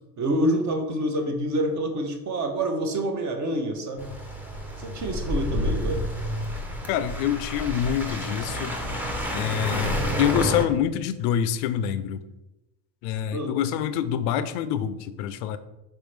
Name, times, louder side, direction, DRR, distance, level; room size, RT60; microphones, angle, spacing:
voice 1, 0.2-4.1 4.8-6.0 13.3-13.5, right 1 dB, 35° right, 4 dB, 0.9 m, -27 dB
sound 1, 4.0-10.7, equal, 5° right, 0.6 m, -29 dB
voice 2, 6.9-8.8 9.3-12.2 13.0-15.6, left 10 dB, 55° left, 12 dB, 0.5 m, -26 dB
4.3 x 3.6 x 3.2 m, 0.97 s
hypercardioid pair, 85°, 49 cm